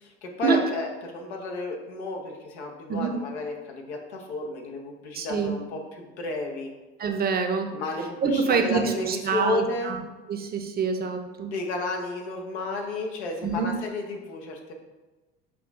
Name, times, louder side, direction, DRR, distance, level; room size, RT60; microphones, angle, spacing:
voice 1, 0.0-6.7 7.7-10.0 11.4-14.7, left 2 dB, 85° left, 2 dB, 0.8 m, -32 dB
voice 2, 5.1-5.5 7.0-7.7 8.2-10.0 10.3-11.5 13.4-13.7, right 5 dB, 30° right, 6 dB, 0.6 m, -26 dB
6.1 x 2.4 x 3.5 m, 1.2 s
hypercardioid pair, 75°, 33 cm